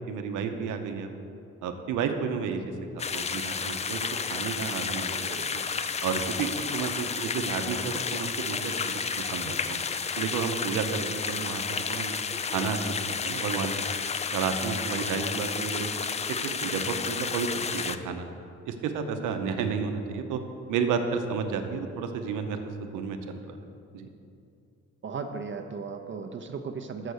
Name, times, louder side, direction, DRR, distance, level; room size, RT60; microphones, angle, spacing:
voice 1, 0.1-1.1 1.6-2.6 2.9-5.6 6.0-9.8 10.2-12.1 12.5-12.8 13.1-13.7 14.3-15.9 16.4-18.3 18.7-20.4 20.7-23.6 23.9-24.1, right 6 dB, 90° right, 6 dB, 0.8 m, -31 dB
sound 1, 3.0-18.0, left 5 dB, 25° left, 0.3 m, -31 dB
voice 2, 5.0-5.6 11.0-11.1 15.1-15.2 19.3-19.6 25.0-27.1, right 5 dB, 40° right, 5 dB, 0.6 m, -37 dB
6.7 x 6.6 x 6.4 m, 2.6 s
cardioid pair, 90°, 30 cm